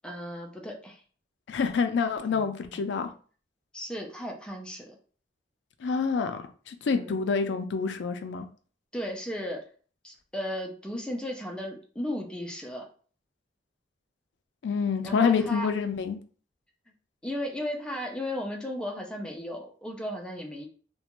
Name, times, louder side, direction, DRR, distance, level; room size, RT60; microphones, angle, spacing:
voice 1, 0.0-1.0 2.3-2.5 3.7-5.0 6.9-7.2 8.9-9.6 10.0-12.9 15.0-15.7 17.2-20.7, equal, 5° left, 0.4 m, -35 dB
voice 2, 1.5-3.1 5.8-8.5 14.6-16.2, left 5 dB, 70° left, 0.4 m, -27 dB
2.4 x 2.2 x 2.9 m
head